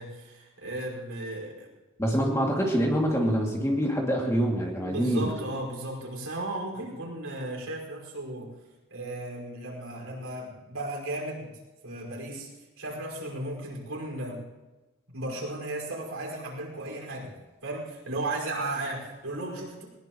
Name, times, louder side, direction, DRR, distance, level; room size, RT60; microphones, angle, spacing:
voice 1, 0.0-1.7 4.8-8.5 8.9-11.5 11.8-14.4 15.1-17.3 17.6-19.8, right 1 dB, 90° right, -2 dB, 5.3 m, -35 dB
voice 2, 2.0-5.3, equal, 15° left, -1 dB, 2.4 m, -25 dB
21.0 x 19.5 x 3.1 m, 1.1 s
head